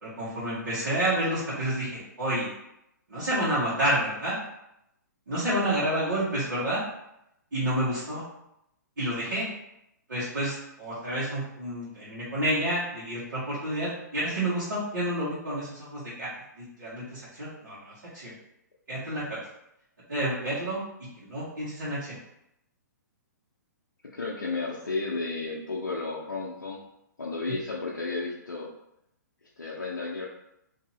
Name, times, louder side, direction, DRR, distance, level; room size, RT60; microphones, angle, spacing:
voice 1, 0.0-2.5 3.1-4.4 5.3-6.8 7.5-8.2 9.0-9.5 10.1-18.3 18.9-19.2 20.1-20.8 21.2-22.2, right 1 dB, 70° right, -10 dB, 1.3 m, -29 dB
voice 2, 24.1-26.8 27.2-28.7 29.6-30.3, left 3 dB, 90° left, -5 dB, 0.5 m, -32 dB
2.7 x 2.6 x 2.7 m, 0.81 s
hypercardioid pair, 130°, 10 cm